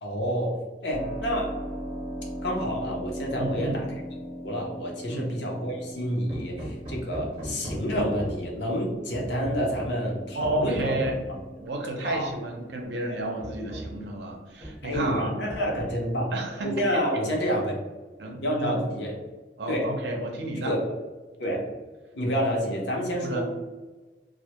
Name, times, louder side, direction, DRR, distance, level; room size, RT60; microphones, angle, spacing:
voice 1, 0.0-1.6 2.4-3.9 4.4-10.9 12.0-12.3 13.1-13.2 14.8-16.3 16.6-17.7 18.4-19.1 19.7-19.9 20.6-20.8 21.4-21.6 22.1-23.4, equal, 75° left, -1 dB, 0.6 m, -28 dB
Keyboard (musical), 0.9-13.4, equal, 5° left, 0.3 m, -40 dB
voice 2, 3.4-3.8 5.1-5.3 10.3-11.2 11.6-15.3 16.3-17.0 18.2-18.8 19.6-20.7 23.1-23.4, right 1 dB, 65° right, 1 dB, 0.5 m, -31 dB
Hammer, 6.3-8.6 9.1-10.0 10.4-11.3 12.4-12.5 12.9-13.0 13.4-14.0 14.6-15.2 15.5-16.2, equal, 30° right, 0.7 m, -38 dB
2.1 x 2.0 x 2.8 m, 1.2 s
head